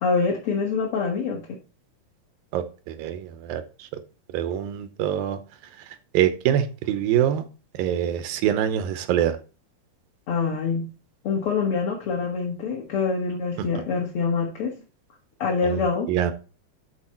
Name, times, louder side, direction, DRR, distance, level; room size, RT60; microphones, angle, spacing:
voice 1, 0.0-1.6 10.3-10.9 11.2-14.8 15.4-16.1, left 5 dB, 50° left, 0 dB, 1.8 m, -25 dB
voice 2, 2.5-3.9 4.3-5.4 6.1-7.4 7.7-9.4 13.6-13.7 15.6-15.8 16.1-16.3, right 10 dB, 85° right, 10 dB, 2.6 m, -24 dB
12.0 x 4.7 x 4.3 m, 0.34 s
omnidirectional pair, 4.1 m